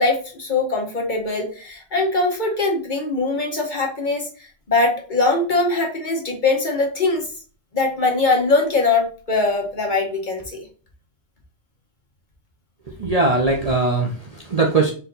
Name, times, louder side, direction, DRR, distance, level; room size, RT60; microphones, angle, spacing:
voice 1, 0.0-4.3 4.7-7.2 7.7-10.6, left 3 dB, 40° left, 0 dB, 1.1 m, -21 dB
voice 2, 13.0-14.9, right 3 dB, 40° right, -1 dB, 0.6 m, -20 dB
4.5 x 2.7 x 3.9 m, 0.38 s
omnidirectional pair, 1.3 m